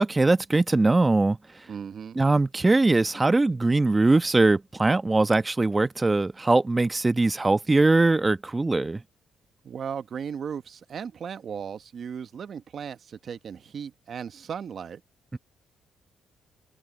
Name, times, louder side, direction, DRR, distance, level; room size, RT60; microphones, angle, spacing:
voice 1, 0.0-1.4 2.2-9.0 15.3-15.4, right 2 dB, 20° right, 1.0 m, -21 dB
voice 2, 1.7-2.2 9.6-15.0, right 7 dB, 55° right, 1.0 m, -36 dB
cardioid pair, 90°, 0 cm